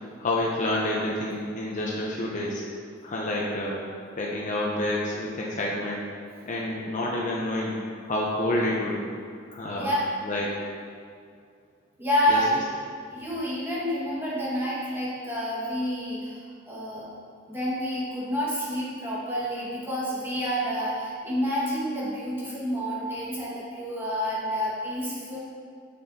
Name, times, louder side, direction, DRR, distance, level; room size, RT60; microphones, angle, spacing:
voice 1, 0.2-2.6 3.0-3.8 4.1-6.0 6.4-9.0 9.5-10.5 12.3-12.6, left 1 dB, 40° left, -3 dB, 0.7 m, -29 dB
voice 2, 12.0-12.6 13.1-17.1 17.5-25.4, equal, 10° right, -8 dB, 1.7 m, -28 dB
7.2 x 6.9 x 2.8 m, 2.2 s
head